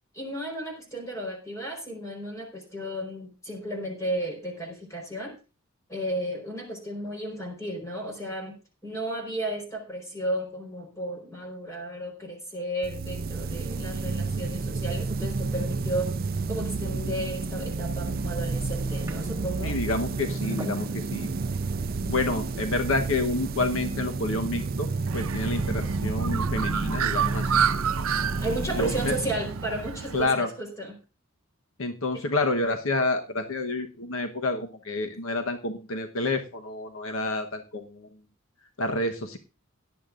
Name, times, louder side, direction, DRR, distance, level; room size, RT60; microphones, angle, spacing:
voice 1, 0.1-5.3 5.9-8.5 8.8-16.1 16.5-19.8 20.4-20.7 28.4-31.0 32.1-32.2, right 1 dB, 15° left, 1 dB, 4.4 m, -34 dB
sound 1, 12.8-30.3, right 3 dB, 45° right, 0.5 m, -30 dB
sound 2, 17.7-22.8, right 1 dB, 15° right, 1.4 m, -47 dB
voice 2, 19.6-21.3 22.1-24.9 25.1-27.6 28.8-29.1 30.1-30.5 31.8-38.1 38.8-39.4, left 2 dB, 75° left, 5 dB, 1.1 m, -29 dB
Bird, 25.1-30.3, right 8 dB, 85° right, 0.7 m, -30 dB
17.5 x 11.0 x 2.5 m, 0.32 s
head